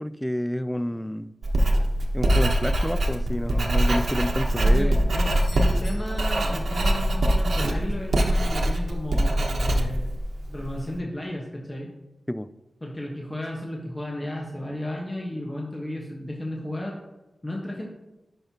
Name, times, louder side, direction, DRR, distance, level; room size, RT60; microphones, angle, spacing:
voice 1, 0.0-1.3 2.1-4.9 12.3-12.5, equal, 5° left, 14 dB, 0.3 m, -29 dB
Writing, 1.4-10.8, right 1 dB, 75° right, 1.0 m, -23 dB
voice 2, 4.6-10.1 10.4-11.9 12.8-17.0 17.4-17.9, left 1 dB, 25° left, -2 dB, 1.2 m, -34 dB
Doorbell, 5.3-7.2 11.2-11.3, left 1 dB, 65° left, 2.8 m, -50 dB
10.5 x 5.6 x 2.9 m, 1.0 s
wide cardioid pair, 70°, 0 cm